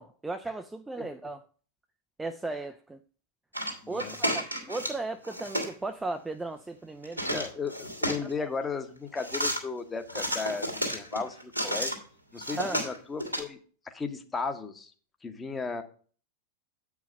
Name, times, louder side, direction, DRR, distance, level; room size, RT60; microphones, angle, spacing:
voice 1, 0.0-1.4 2.2-3.0 3.9-7.4 8.4-8.5 12.5-12.9, right 2 dB, 10° right, 0.4 m, -36 dB
sound 1, 3.5-5.0 5.2-5.7 7.0-8.3 9.2-9.6 10.1-12.0 12.4-13.4, equal, 90° right, 1.6 m, -32 dB
voice 2, 3.8-4.1 7.3-12.0 12.3-13.6 13.8-14.9 15.2-15.8, left 4 dB, 15° left, 1.0 m, -35 dB
8.0 x 4.8 x 5.1 m
figure-of-eight pair, 90°, 0 cm